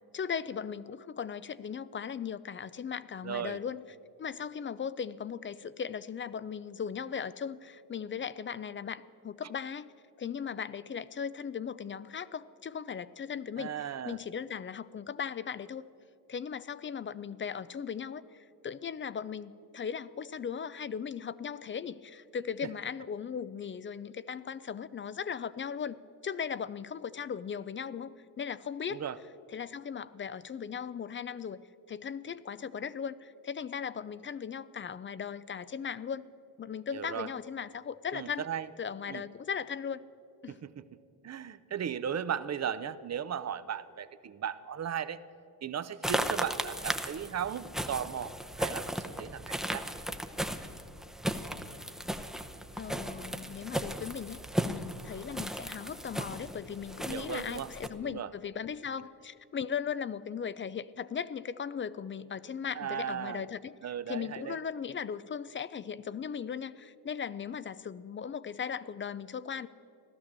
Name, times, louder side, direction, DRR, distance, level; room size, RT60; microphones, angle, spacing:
voice 1, 0.1-3.8 4.2-9.9 10.2-15.8 16.3-26.0 26.2-29.0 29.5-31.6 31.9-36.3 36.6-38.5 38.8-40.0 40.4-40.6 52.8-63.7 64.1-69.7, left 7 dB, 30° left, 17 dB, 0.4 m, -38 dB
voice 2, 3.2-3.6 13.6-14.2 28.9-29.2 36.9-37.3 38.1-38.7 39.1-39.2 40.5-40.8 41.2-45.2 45.6-49.8 57.1-57.7 58.0-58.3 62.8-63.5 63.8-64.6, right 8 dB, 40° right, 14 dB, 0.7 m, -36 dB
sound 1, 46.0-57.9, equal, ahead, 0.8 m, -36 dB
16.0 x 12.5 x 7.4 m, 2.6 s
cardioid pair, 100°, 41 cm